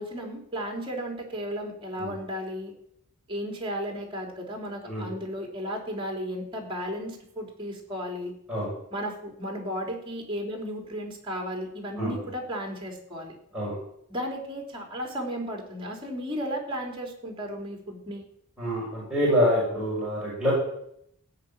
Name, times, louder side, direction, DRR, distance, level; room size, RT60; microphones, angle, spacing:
voice 1, 0.0-2.7 3.3-8.3 8.9-13.4 14.1-18.3, equal, 25° right, 1 dB, 3.4 m, -34 dB
voice 2, 18.6-20.5, equal, 5° right, -9 dB, 6.9 m, -26 dB
16.0 x 6.0 x 8.9 m, 0.73 s
head